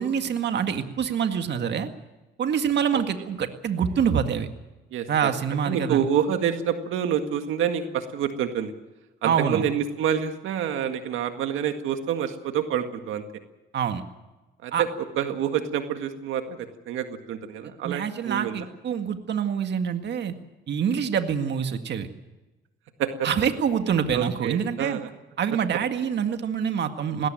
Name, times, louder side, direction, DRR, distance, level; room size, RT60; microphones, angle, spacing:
voice 1, 0.0-1.9 2.4-4.5 5.1-6.0 9.2-9.7 13.7-14.0 14.7-14.8 17.8-20.3 20.7-22.1 23.2-25.0 25.4-27.3, right 7 dB, 60° right, 7 dB, 1.9 m, -26 dB
voice 2, 4.9-5.3 5.6-8.7 9.2-13.2 14.6-14.9 15.2-18.7 23.0-23.3 24.1-25.1, right 9 dB, 90° right, 7 dB, 1.9 m, -27 dB
20.0 x 18.0 x 9.1 m, 1.1 s
cardioid pair, 90°, 20 cm